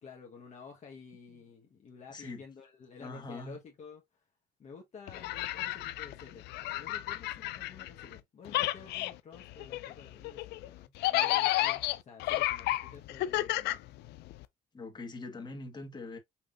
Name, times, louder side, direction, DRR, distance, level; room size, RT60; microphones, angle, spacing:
voice 1, 0.0-4.0 4.6-6.5 6.8-13.8, left 5 dB, 45° left, 1.3 m, -51 dB
voice 2, 2.1-2.4 3.0-3.6 14.7-16.2, left 2 dB, 25° left, 1.6 m, -43 dB
sound 1, 5.1-8.2 8.4-14.4, left 16 dB, 80° left, 0.5 m, -32 dB
5.8 x 3.2 x 2.5 m
cardioid pair, 110°, 17 cm